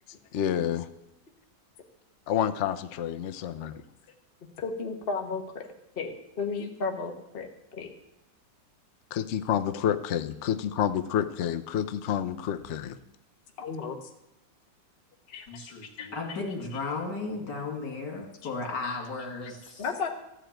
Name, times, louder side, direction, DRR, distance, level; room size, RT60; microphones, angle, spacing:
voice 1, 0.3-0.9 2.3-3.8 9.1-13.0, left 9 dB, 80° left, 9 dB, 0.6 m, -29 dB
voice 2, 4.6-5.7 6.0-7.9 13.6-14.0 15.3-15.4 15.8-16.1 19.8-20.1, left 4 dB, 35° left, 3 dB, 1.1 m, -33 dB
voice 3, 15.5-19.9, left 3 dB, 65° left, 1 dB, 3.1 m, -35 dB
13.5 x 5.0 x 9.0 m, 0.91 s
omnidirectional pair, 2.0 m